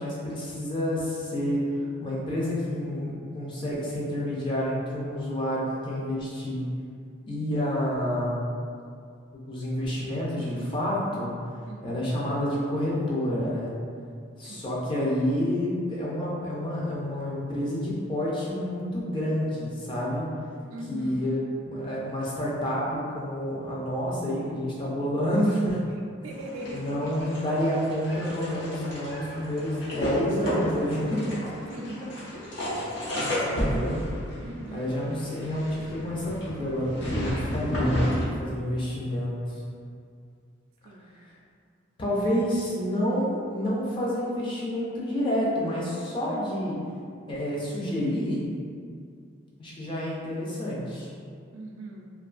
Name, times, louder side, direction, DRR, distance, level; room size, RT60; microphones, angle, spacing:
voice 1, 0.0-1.7 2.0-6.6 7.3-8.4 9.5-11.3 11.8-13.7 14.4-20.3 20.9-21.4 21.7-25.8 26.7-31.2 33.2-34.0 34.7-39.6 42.0-46.8 47.3-48.5 49.6-51.1, equal, 25° left, -5 dB, 0.4 m, -29 dB
voice 2, 11.7-12.1 14.4-14.7 20.7-21.4 26.2-27.2 31.7-32.2 34.4-35.1 40.8-41.2 51.5-52.1, right 1 dB, 80° right, 1 dB, 0.3 m, -40 dB
sound 1, 26.3-38.2, equal, 60° left, 0.7 m, -32 dB
2.5 x 2.2 x 2.4 m, 2.3 s
head